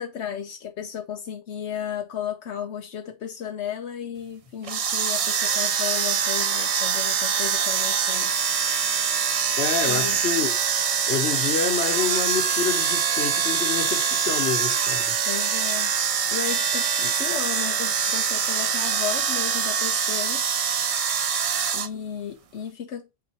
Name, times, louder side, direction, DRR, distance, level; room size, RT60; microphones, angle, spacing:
voice 1, 0.0-8.5 9.9-10.2 15.3-15.9 16.3-20.4 21.7-23.1, left 8 dB, 90° left, 1.1 m, -34 dB
sound 1, 4.6-21.9, right 7 dB, 50° right, 0.4 m, -24 dB
voice 2, 9.6-10.5 11.1-15.1, left 6 dB, 75° left, 1.3 m, -27 dB
8.8 x 4.0 x 2.9 m
omnidirectional pair, 1.1 m